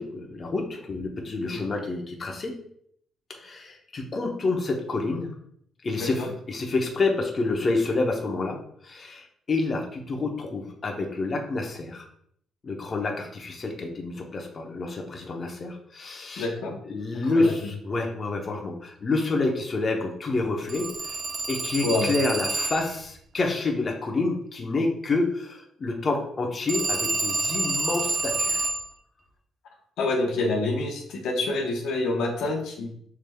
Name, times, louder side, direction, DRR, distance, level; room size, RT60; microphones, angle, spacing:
voice 1, 0.0-2.6 3.3-5.3 5.8-8.6 8.8-12.1 12.6-16.5 16.8-21.2 21.5-28.7, left 3 dB, 40° left, 1 dB, 0.8 m, -28 dB
voice 2, 6.0-6.3 16.4-16.8 17.2-17.5 21.8-22.1 30.0-32.9, left 2 dB, 85° left, 1 dB, 0.9 m, -27 dB
Telephone, 20.7-23.0 26.7-28.9, right 2 dB, 35° right, 0.8 m, -28 dB
5.8 x 3.3 x 2.3 m, 0.67 s
cardioid pair, 90°, 0 cm